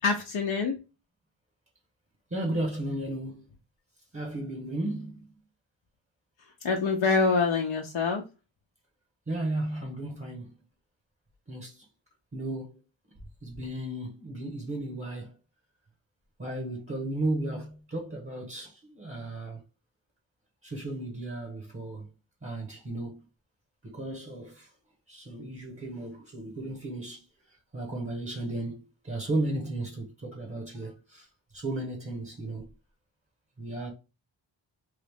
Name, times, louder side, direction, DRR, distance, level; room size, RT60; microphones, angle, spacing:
voice 1, 0.0-0.8 6.6-8.2, left 4 dB, 65° left, 0.8 m, -25 dB
voice 2, 2.3-3.5 4.1-5.2 9.3-10.5 11.5-11.8 12.3-12.7 13.4-15.4 16.4-19.6 20.6-22.1 22.4-23.2 23.8-24.7 25.1-27.2 27.7-31.3 31.5-32.7 33.6-33.9, right 1 dB, 25° right, 1.0 m, -34 dB
3.2 x 2.4 x 3.4 m
wide cardioid pair, 115°, 48 cm